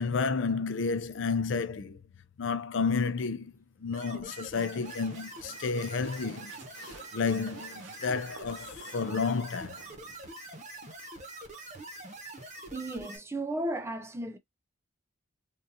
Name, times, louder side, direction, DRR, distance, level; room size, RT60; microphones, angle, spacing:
voice 1, 0.0-2.0 2.4-3.5 3.8-6.5 6.8-9.8, left 4 dB, 60° left, 0.4 m, -31 dB
sound 1, 3.9-13.2, right 2 dB, 35° right, 1.0 m, -45 dB
sound 2, 4.8-10.2, right 4 dB, 60° right, 0.7 m, -53 dB
voice 2, 12.7-14.4, right 1 dB, 10° right, 0.4 m, -34 dB
3.7 x 2.5 x 2.7 m
head